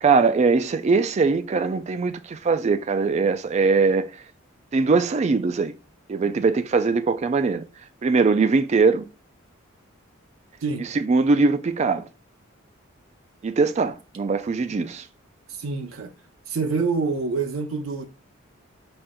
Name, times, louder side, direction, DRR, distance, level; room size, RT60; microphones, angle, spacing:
voice 1, 0.0-4.1 4.7-5.7 6.1-7.6 8.0-9.1 10.8-12.1 13.4-15.1, right 4 dB, 35° right, 0.3 m, -21 dB
voice 2, 15.5-16.1 16.5-18.1, right 4 dB, 85° right, 0.6 m, -26 dB
4.9 x 4.3 x 2.2 m
head